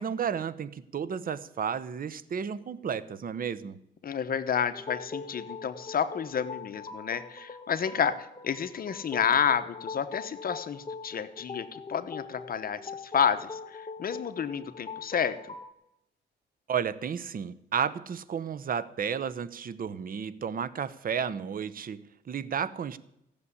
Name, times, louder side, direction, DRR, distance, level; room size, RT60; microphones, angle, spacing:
voice 1, 0.0-3.8 16.7-23.0, right 7 dB, 45° right, 16 dB, 0.9 m, -32 dB
voice 2, 4.0-15.4, left 7 dB, 45° left, 11 dB, 1.0 m, -30 dB
sound 1, 4.7-15.7, left 4 dB, 30° left, 1.3 m, -42 dB
15.0 x 6.9 x 9.8 m, 0.81 s
cardioid pair, 90°, 20 cm